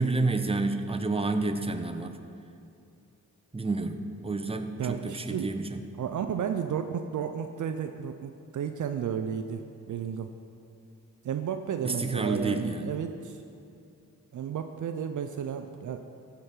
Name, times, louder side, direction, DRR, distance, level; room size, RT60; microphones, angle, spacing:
voice 1, 0.0-2.2 3.5-5.8 11.8-12.9, right 3 dB, 15° right, 7 dB, 0.9 m, -29 dB
voice 2, 4.8-5.5 6.0-10.3 11.2-13.4 14.3-16.1, right 8 dB, 55° right, 7 dB, 0.5 m, -33 dB
15.0 x 5.2 x 4.4 m, 2.6 s
supercardioid pair, 45°, 35 cm